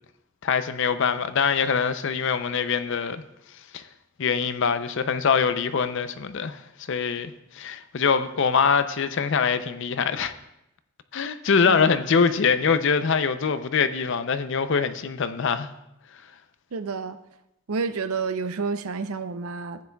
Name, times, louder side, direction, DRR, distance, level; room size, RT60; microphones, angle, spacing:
voice 1, 0.4-3.2 3.7-3.8 4.2-6.6 6.9-10.3 11.1-15.7, left 6 dB, 60° left, 11 dB, 0.5 m, -23 dB
voice 2, 16.7-17.2 17.7-19.8, right 4 dB, 80° right, 12 dB, 0.5 m, -29 dB
14.5 x 9.6 x 2.3 m, 0.87 s
head